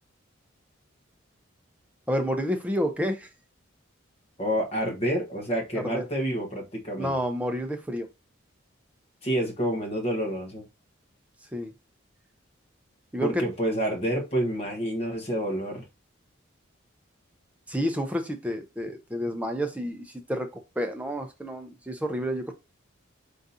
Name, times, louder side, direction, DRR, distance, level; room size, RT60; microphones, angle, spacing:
voice 1, 2.1-3.3 5.8-6.1 7.0-8.1 11.5-11.7 13.1-13.4 17.7-22.5, equal, 5° right, 0.5 m, -29 dB
voice 2, 4.4-7.2 9.2-10.6 13.2-15.8, equal, 30° left, 1.2 m, -28 dB
4.0 x 3.7 x 2.7 m
head